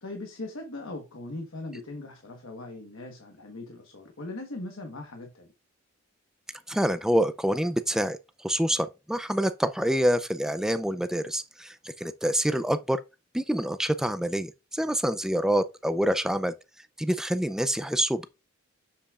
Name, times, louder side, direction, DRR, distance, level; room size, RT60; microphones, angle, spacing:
voice 1, 0.0-5.5, left 2 dB, 70° left, 1.3 m, -39 dB
voice 2, 6.7-13.0 13.3-16.5 17.0-18.3, equal, 5° right, 0.4 m, -26 dB
7.6 x 6.9 x 2.4 m
head